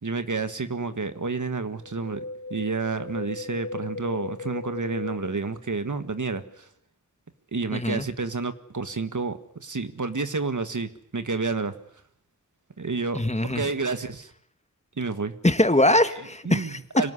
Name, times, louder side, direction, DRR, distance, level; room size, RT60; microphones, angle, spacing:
voice 1, 0.0-2.2 2.5-6.7 7.5-11.7 12.8-14.3 15.0-15.3 16.5-17.1, right 4 dB, 85° right, 10 dB, 1.7 m, -30 dB
Wind, 1.8-6.2 6.4-6.5, left 3 dB, 70° left, 3.2 m, -37 dB
voice 2, 7.7-8.1 13.1-13.7 15.4-16.8, left 1 dB, 25° left, 10 dB, 1.8 m, -22 dB
25.0 x 18.5 x 9.8 m, 0.68 s
wide cardioid pair, 50°, 30 cm